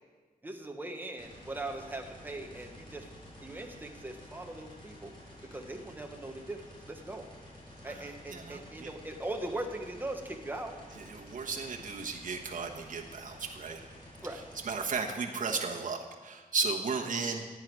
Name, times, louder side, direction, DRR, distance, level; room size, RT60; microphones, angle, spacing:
voice 1, 0.4-3.1 3.4-5.1 5.5-7.3 7.8-10.8 14.2-14.4, right 2 dB, 15° right, 3 dB, 1.1 m, -40 dB
sound 1, 1.2-14.9, equal, 35° left, 3.2 m, -51 dB
voice 2, 7.9-8.9 10.9-13.8 14.6-17.4, right 4 dB, 60° right, 0 dB, 1.2 m, -35 dB
16.0 x 9.2 x 4.7 m, 1.4 s
wide cardioid pair, 170°, 15 cm